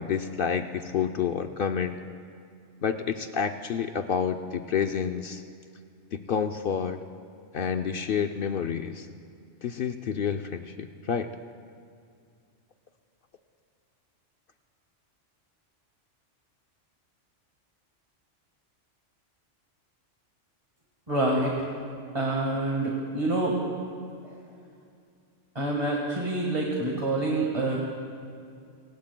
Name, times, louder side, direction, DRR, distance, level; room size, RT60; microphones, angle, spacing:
voice 1, 0.0-2.0 2.8-5.4 6.1-7.0 7.5-9.1 9.6-11.3, left 7 dB, 60° left, 7 dB, 0.6 m, -29 dB
voice 2, 21.1-21.5 22.1-23.6 25.5-27.8, right 2 dB, 30° right, -3 dB, 1.6 m, -27 dB
24.0 x 19.0 x 2.2 m, 2.4 s
omnidirectional pair, 1.2 m